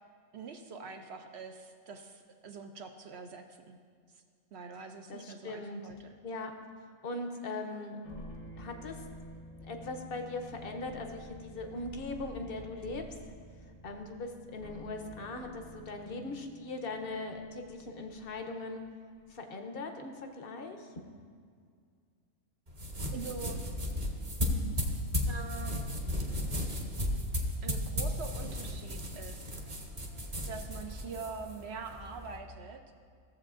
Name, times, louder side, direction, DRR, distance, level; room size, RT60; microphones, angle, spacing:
voice 1, 0.3-3.8 4.1-4.2 4.5-6.2 23.1-23.6 25.3-26.3 27.6-29.5 30.4-32.8, right 5 dB, 65° right, 5 dB, 0.7 m, -44 dB
voice 2, 5.1-5.9 6.2-6.5 7.0-8.0 8.6-9.0 9.6-13.3 13.8-18.8 19.3-20.9, left 2 dB, 50° left, 5 dB, 0.8 m, -40 dB
sound 1, 8.0-19.4, left 1 dB, 70° left, 1.4 m, -50 dB
sound 2, 22.7-32.4, left 1 dB, 30° right, 0.9 m, -35 dB
15.5 x 7.4 x 2.4 m, 2.1 s
omnidirectional pair, 1.5 m